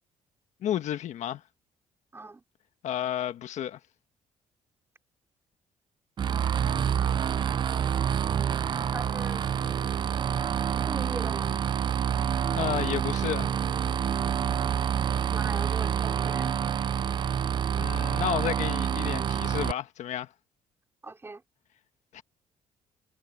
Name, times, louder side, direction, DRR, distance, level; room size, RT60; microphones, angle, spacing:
voice 1, 0.6-1.4 2.8-3.8 12.5-13.5 17.8-20.3 22.1-22.2, left 11 dB, 70° left, 1.4 m, -31 dB
voice 2, 2.1-2.4 8.9-9.4 10.9-11.6 15.3-16.6 21.0-21.4, right 3 dB, 20° right, 5.1 m, -40 dB
sound 1, 6.2-19.7, right 8 dB, 35° right, 0.4 m, -27 dB
cardioid pair, 120°, 13 cm